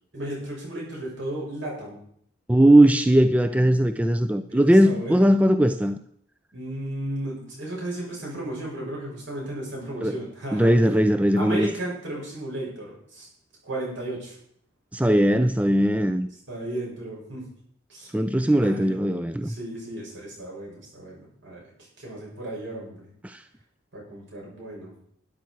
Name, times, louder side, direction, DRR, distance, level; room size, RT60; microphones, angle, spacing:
voice 1, 0.1-2.0 4.5-5.3 6.5-10.9 11.3-13.3 13.6-14.4 16.5-17.4 17.9-18.1 18.6-18.9 19.4-21.6 22.0-23.1 23.9-24.9, right 1 dB, 65° right, -3 dB, 6.7 m, -34 dB
voice 2, 2.5-6.0 10.0-10.1 10.5-11.7 14.9-16.3 18.1-19.5 23.2-23.4, right 1 dB, 5° right, 9 dB, 0.4 m, -19 dB
12.5 x 10.5 x 4.6 m, 0.65 s
head